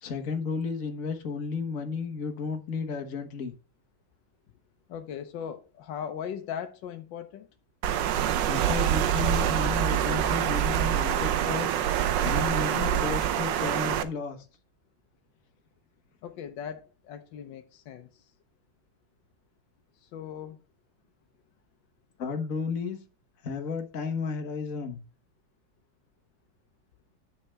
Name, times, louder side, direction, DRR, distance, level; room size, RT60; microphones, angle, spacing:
voice 1, 0.0-3.5 8.5-14.4 22.2-23.0 23.4-25.0, left 5 dB, 50° left, 1.6 m, -33 dB
voice 2, 4.9-7.5 16.2-18.3 20.0-20.6, left 8 dB, 80° left, 1.5 m, -39 dB
Water, 7.8-14.0, right 10 dB, 75° right, 1.4 m, -26 dB
sound 1, 9.4-12.0, right 12 dB, 35° right, 0.5 m, -35 dB
9.4 x 6.7 x 3.4 m
omnidirectional pair, 2.0 m